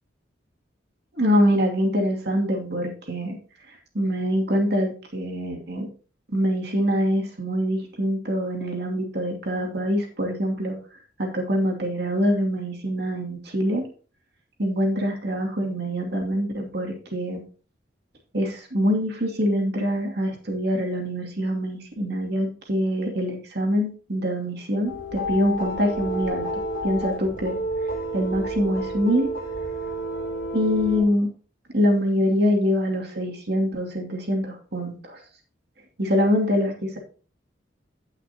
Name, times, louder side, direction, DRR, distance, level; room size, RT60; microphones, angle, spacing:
voice 1, 1.1-3.4 3.7-5.9 6.3-13.8 14.6-17.4 18.3-27.6 28.1-29.3 30.5-31.3 31.7-35.2 36.0-37.0, equal, 60° right, 1 dB, 2.5 m, -24 dB
sound 1, 24.9-31.0, right 1 dB, 50° left, 3.9 m, -30 dB
16.5 x 5.8 x 2.9 m, 0.39 s
head